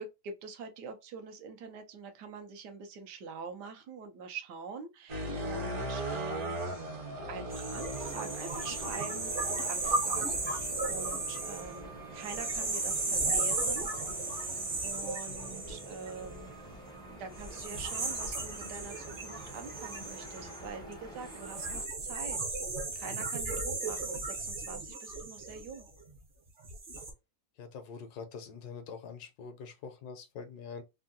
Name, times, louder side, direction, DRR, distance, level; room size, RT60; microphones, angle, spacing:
voice 1, 0.0-6.6 7.3-13.9 14.4-14.6 14.8-16.5 17.1-22.4 22.9-25.9, right 5 dB, 80° right, 1.3 m, -45 dB
sound 1, 5.1-21.4 22.1-24.5, right 1 dB, 65° right, 1.5 m, -43 dB
sound 2, 6.6-21.8, right 2 dB, 5° left, 0.5 m, -50 dB
sound 3, 7.5-16.7 17.3-26.1 26.6-27.1, right 3 dB, 45° right, 0.7 m, -35 dB
voice 2, 15.3-15.6 27.6-30.8, left 5 dB, 75° left, 1.2 m, -45 dB
3.5 x 2.2 x 2.6 m
omnidirectional pair, 1.8 m